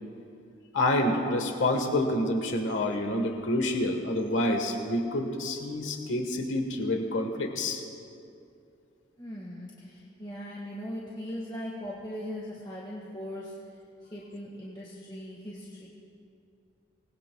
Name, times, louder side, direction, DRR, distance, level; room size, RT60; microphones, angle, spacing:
voice 1, 0.7-7.8, left 1 dB, 80° left, 4 dB, 1.4 m, -28 dB
voice 2, 9.2-13.5 14.1-15.9, equal, 25° left, -4 dB, 1.6 m, -39 dB
25.5 x 19.5 x 2.3 m, 2.6 s
head